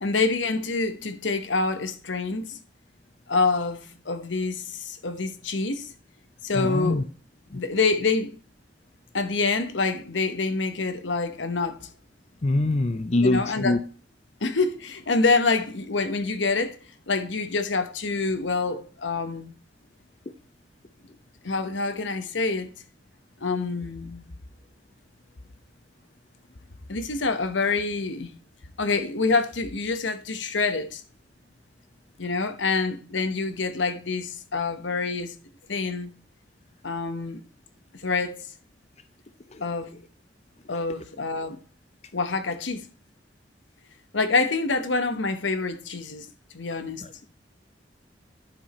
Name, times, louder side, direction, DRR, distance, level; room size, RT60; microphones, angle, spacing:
voice 1, 0.0-2.6 3.3-5.9 6.4-7.0 7.5-8.4 9.1-11.9 13.2-13.8 14.4-16.8 17.1-19.5 21.4-22.7 23.4-24.3 26.9-28.3 28.8-31.0 32.2-35.3 35.7-36.1 36.8-37.4 38.0-38.5 39.6-40.0 40.7-41.6 42.1-42.9 44.1-46.3 46.5-47.1, left 3 dB, 90° left, 1.1 m, -26 dB
voice 2, 6.5-7.0 7.5-7.6 12.4-13.8 39.5-39.6 47.0-47.3, left 2 dB, 35° left, 0.5 m, -24 dB
10.0 x 5.9 x 4.3 m
head